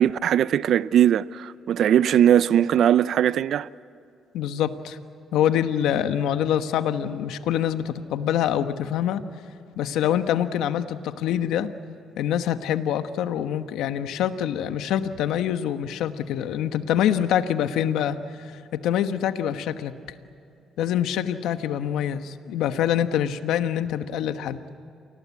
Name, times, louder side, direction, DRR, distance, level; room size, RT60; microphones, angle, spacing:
voice 1, 0.0-3.7, right 10 dB, 70° right, 0.5 m, -20 dB
voice 2, 4.3-5.0 5.3-9.2 9.8-11.7 12.2-19.9 20.8-24.7, left 10 dB, 90° left, 1.2 m, -25 dB
28.5 x 19.5 x 8.4 m
cardioid pair, 90°, 0 cm